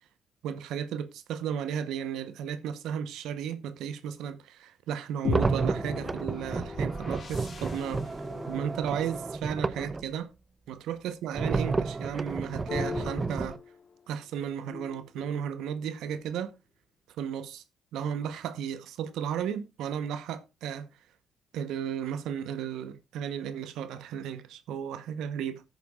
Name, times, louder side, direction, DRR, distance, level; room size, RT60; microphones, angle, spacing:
voice 1, 0.4-8.1 8.5-10.3 10.7-13.6 14.1-16.5 17.2-17.6 17.9-20.9 21.5-25.6, right 8 dB, 85° right, 0.9 m, -34 dB
sound 1, 5.2-9.2, left 2 dB, 65° left, 2.6 m, -37 dB
sound 2, 5.3-10.0 11.3-13.6, right 4 dB, 25° right, 0.5 m, -31 dB
sound 3, 5.7-9.8 12.7-14.2 14.7-16.5, left 4 dB, 45° left, 1.4 m, -43 dB
19.5 x 6.7 x 2.3 m
cardioid pair, 90°, 0 cm